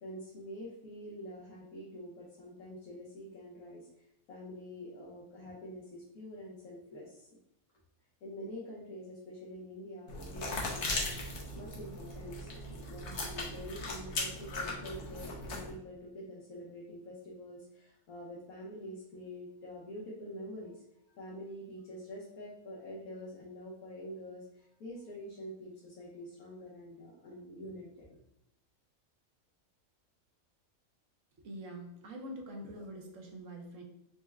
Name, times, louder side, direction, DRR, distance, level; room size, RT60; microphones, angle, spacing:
voice 1, 0.0-7.3 8.2-12.6 12.9-20.8 21.2-28.2, equal, 80° left, -5 dB, 1.3 m, -46 dB
sound 1, 10.1-15.7, left 2 dB, 60° left, 1.0 m, -38 dB
voice 2, 31.4-33.8, equal, 65° right, 1 dB, 1.0 m, -45 dB
4.4 x 2.1 x 3.4 m, 0.80 s
omnidirectional pair, 1.5 m